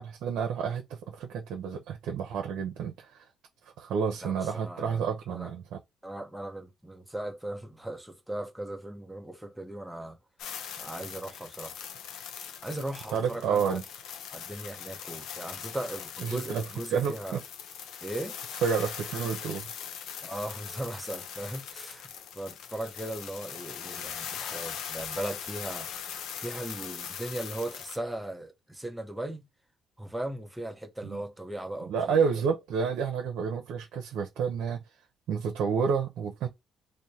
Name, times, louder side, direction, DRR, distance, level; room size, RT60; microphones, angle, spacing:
voice 1, 0.0-3.2 3.8-5.8 13.1-13.8 16.2-16.6 16.9-17.4 18.6-19.7 31.0-31.2 31.9-34.8 35.3-36.5, right 6 dB, 80° right, 0.7 m, -30 dB
voice 2, 4.2-5.5 6.0-10.2 10.8-11.8 12.6-13.8 14.3-17.4 18.0-18.4 20.2-25.9 26.4-29.4 30.0-32.2, right 1 dB, 5° right, 0.9 m, -38 dB
sound 1, 10.4-28.0, left 8 dB, 85° left, 0.6 m, -41 dB
3.2 x 2.1 x 4.2 m
cardioid pair, 90°, 0 cm